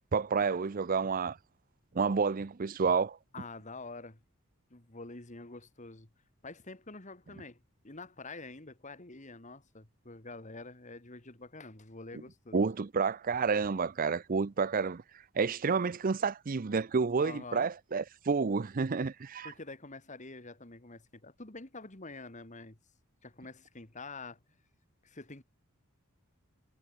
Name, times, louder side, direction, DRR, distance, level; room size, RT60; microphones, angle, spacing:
voice 1, 0.1-1.4 1.9-3.2 12.5-15.0 15.4-19.5, right 5 dB, 40° right, 0.5 m, -29 dB
voice 2, 3.3-4.2 4.7-6.1 6.4-12.6 17.2-17.7 19.4-22.8 23.2-24.4 25.0-25.4, left 3 dB, 35° left, 2.1 m, -47 dB
head